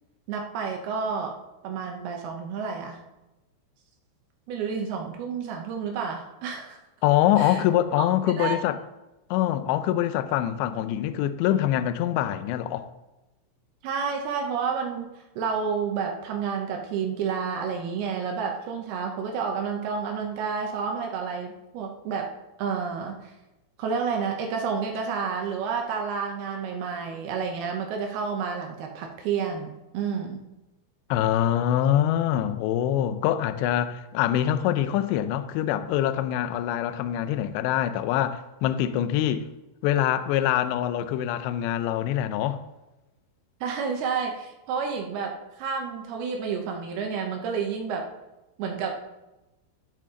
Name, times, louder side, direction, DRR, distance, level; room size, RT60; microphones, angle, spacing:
voice 1, 0.3-1.4 1.6-3.0 4.5-6.8 7.4-7.6 8.0-8.1 8.4-8.6 13.8-22.3 22.6-23.3 23.8-30.4 43.6-48.1 48.6-49.0, right 6 dB, 80° right, 2.2 m, -30 dB
voice 2, 7.0-8.8 9.3-12.9 31.1-39.5 39.8-42.6, left 11 dB, 90° left, 2.5 m, -24 dB
13.0 x 7.7 x 3.8 m
omnidirectional pair, 5.8 m